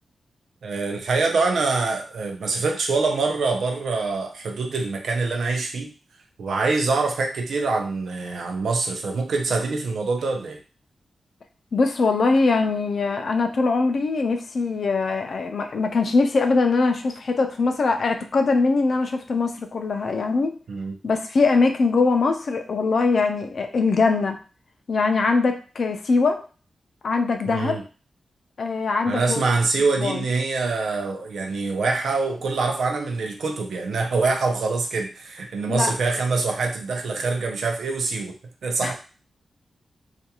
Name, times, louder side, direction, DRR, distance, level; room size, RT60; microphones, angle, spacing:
voice 1, 0.6-5.9 6.4-10.6 20.7-21.0 27.5-27.8 29.1-38.3 38.6-38.9, right 3 dB, 85° right, 2 dB, 0.5 m, -25 dB
voice 2, 11.7-20.6 21.0-24.4 24.9-26.4 27.0-27.8 28.6-29.4 30.0-30.3 35.7-35.9 38.8-38.9, left 3 dB, 50° left, 5 dB, 0.3 m, -22 dB
2.5 x 2.3 x 2.8 m, 0.37 s
wide cardioid pair, 175°, 0 cm